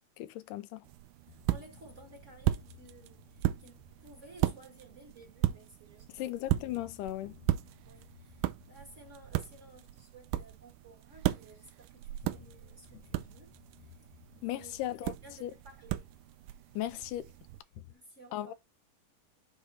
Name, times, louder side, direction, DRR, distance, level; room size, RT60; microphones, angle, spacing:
voice 1, 0.2-0.8 6.2-7.3 14.4-15.1 15.4-15.5 16.8-17.3 18.3-18.5, left 14 dB, 85° left, 2.2 m, -36 dB
sound 1, 0.8-17.6, right 15 dB, 85° right, 2.1 m, -37 dB
sound 2, 1.3-5.7 6.5-11.6 12.1-16.8 17.7-17.9, left 11 dB, 70° left, 2.1 m, -58 dB
voice 2, 1.3-6.4 7.8-13.5 13.8-14.0 14.4-14.7 15.2-16.1 17.9-18.5, right 2 dB, 35° right, 1.3 m, -55 dB
8.3 x 3.5 x 4.2 m
omnidirectional pair, 3.7 m